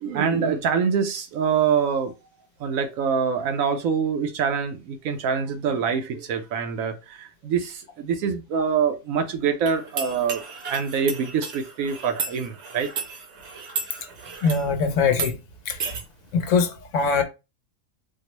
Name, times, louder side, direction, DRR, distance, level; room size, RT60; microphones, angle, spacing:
voice 1, 0.0-2.1 2.6-10.4 10.7-12.9, right 6 dB, 85° right, 1.1 m, -25 dB
sound 1, 9.7-14.7 15.1-15.3 15.8-16.0, right 5 dB, 60° right, 1.0 m, -33 dB
voice 2, 14.4-15.3 15.7-15.8 16.3-17.2, left 5 dB, 70° left, 1.0 m, -22 dB
4.3 x 2.0 x 3.0 m
omnidirectional pair, 1.4 m